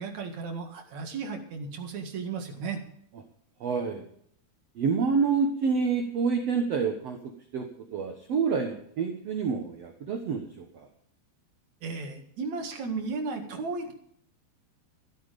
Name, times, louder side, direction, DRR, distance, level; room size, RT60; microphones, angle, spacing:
voice 1, 0.0-2.8 11.8-13.9, right 4 dB, 50° right, 4 dB, 2.7 m, -34 dB
voice 2, 3.6-4.0 4.7-7.2 7.5-10.9, right 5 dB, 70° right, 4 dB, 1.5 m, -28 dB
13.5 x 12.5 x 5.2 m, 0.66 s
omnidirectional pair, 4.8 m